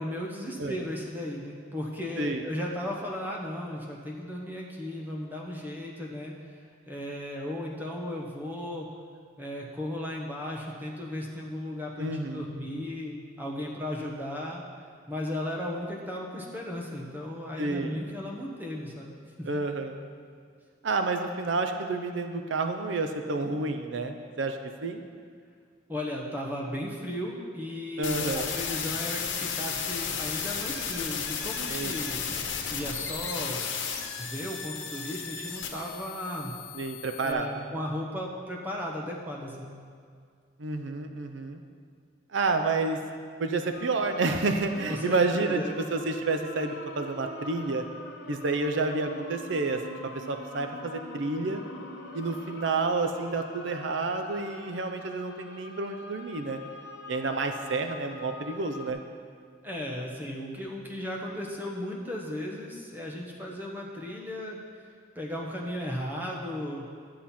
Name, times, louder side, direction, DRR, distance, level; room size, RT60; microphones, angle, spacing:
voice 1, 0.0-6.5 6.9-8.9 9.4-14.6 15.1-19.5 25.9-32.3 32.7-33.7 34.2-36.5 37.2-39.8 44.9-45.8 59.6-64.6 65.1-66.8, left 1 dB, 10° right, -2 dB, 1.0 m, -35 dB
voice 2, 12.0-12.5 17.6-17.9 19.4-20.0 20.8-25.0 28.0-28.5 31.7-31.9 36.7-37.5 40.6-41.6 42.3-43.0 43.4-45.6 45.9-47.8 48.3-49.8 50.1-51.6 52.1-56.6 57.1-59.0, right 3 dB, 75° right, 6 dB, 0.6 m, -29 dB
sound 1, 28.0-37.3, left 6 dB, 85° left, 1.2 m, -34 dB
sound 2, 43.7-58.9, left 2 dB, 60° left, 1.1 m, -44 dB
11.5 x 7.6 x 4.3 m, 2.1 s
head